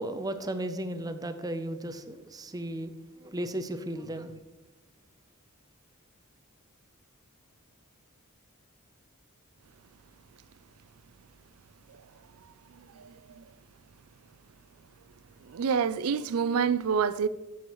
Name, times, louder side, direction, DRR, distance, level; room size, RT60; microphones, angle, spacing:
voice 1, 0.0-4.4, right 1 dB, 15° right, 0.6 m, -35 dB
voice 2, 12.7-13.5 15.4-17.3, right 6 dB, 75° right, 0.4 m, -28 dB
14.0 x 7.1 x 3.1 m
head